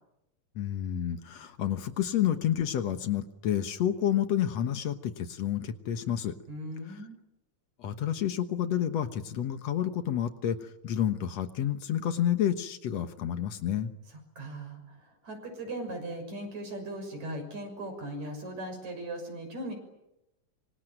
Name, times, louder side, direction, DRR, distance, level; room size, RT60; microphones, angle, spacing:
voice 1, 0.6-6.3 7.8-13.9, left 10 dB, 65° left, 9 dB, 2.3 m, -29 dB
voice 2, 6.5-7.2 14.4-19.7, right 1 dB, 70° right, 5 dB, 7.7 m, -38 dB
26.0 x 25.5 x 9.2 m, 0.89 s
omnidirectional pair, 3.3 m